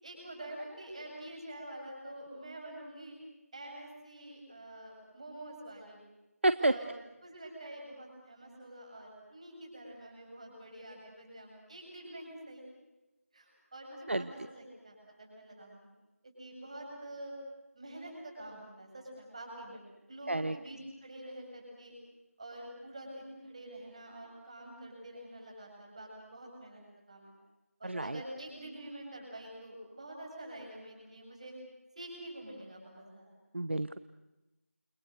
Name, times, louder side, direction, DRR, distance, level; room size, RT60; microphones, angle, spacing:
voice 1, 0.0-3.2 3.5-6.0 6.6-6.9 7.2-12.6 13.3-15.9 16.2-17.3 17.7-22.0 22.4-27.3 27.8-31.5 32.0-33.3, right 1 dB, 25° right, 0 dB, 7.6 m, -47 dB
voice 2, 27.8-28.2 33.5-34.0, right 2 dB, 50° right, 13 dB, 0.9 m, -29 dB
29.5 x 28.0 x 6.7 m, 1.0 s
figure-of-eight pair, 170°, 8 cm